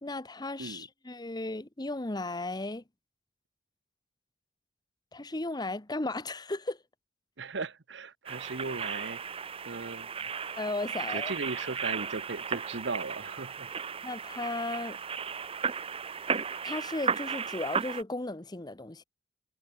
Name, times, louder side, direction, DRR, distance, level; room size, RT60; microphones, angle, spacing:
voice 1, 0.0-2.8 5.1-6.8 10.6-11.3 14.0-15.0 16.6-19.0, left 2 dB, 20° left, 1.0 m, -35 dB
voice 2, 7.4-9.3 9.7-10.3 11.1-13.7, right 3 dB, 65° right, 1.0 m, -37 dB
sound 1, 8.3-18.0, right 6 dB, 30° right, 0.6 m, -35 dB
head